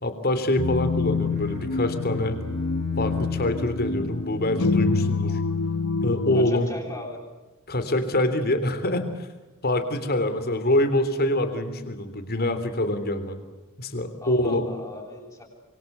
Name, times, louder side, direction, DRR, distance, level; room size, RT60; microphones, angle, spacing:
voice 1, 0.0-2.4 3.0-5.4 6.0-6.7 7.7-9.3 9.6-13.4 13.8-14.7, left 1 dB, 45° left, 10 dB, 3.4 m, -25 dB
sound 1, 0.6-6.5, left 4 dB, 75° left, 0.9 m, -26 dB
Bowed string instrument, 1.2-5.5, right 3 dB, 65° right, 7.3 m, -42 dB
voice 2, 6.3-7.2 14.2-15.4, left 1 dB, 15° left, -2 dB, 7.6 m, -38 dB
26.5 x 24.5 x 8.2 m, 1.1 s
head